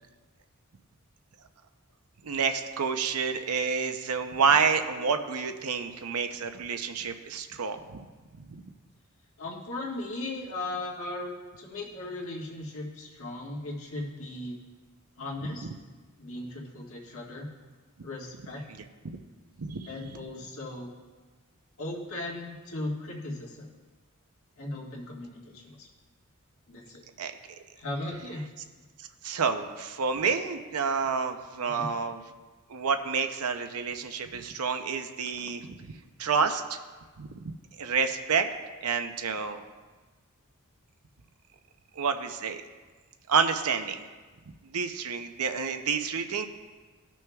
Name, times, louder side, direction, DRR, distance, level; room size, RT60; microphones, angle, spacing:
voice 1, 2.2-8.0 8.5-8.6 19.0-19.2 19.6-19.9 27.2-27.3 29.2-32.2 32.7-36.8 37.2-38.5 38.8-39.6 42.0-42.6 43.3-44.0 44.7-46.5, right 5 dB, 85° right, 7 dB, 0.7 m, -29 dB
voice 2, 9.4-14.6 15.2-15.7 16.2-17.5 18.0-18.6 19.9-21.0 21.8-23.7 24.6-25.9 26.7-27.0 27.8-28.4 31.6-31.9, left 2 dB, 65° left, -4 dB, 1.8 m, -37 dB
18.0 x 6.2 x 2.3 m, 1.3 s
head